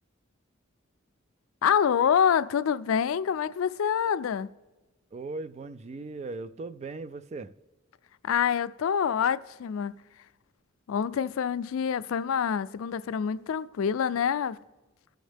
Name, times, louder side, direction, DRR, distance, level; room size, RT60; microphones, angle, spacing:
voice 1, 1.6-4.5 8.2-9.9 10.9-14.6, left 7 dB, 85° left, 0.4 m, -26 dB
voice 2, 5.1-7.5, right 3 dB, 35° right, 0.3 m, -38 dB
18.5 x 6.4 x 3.3 m
head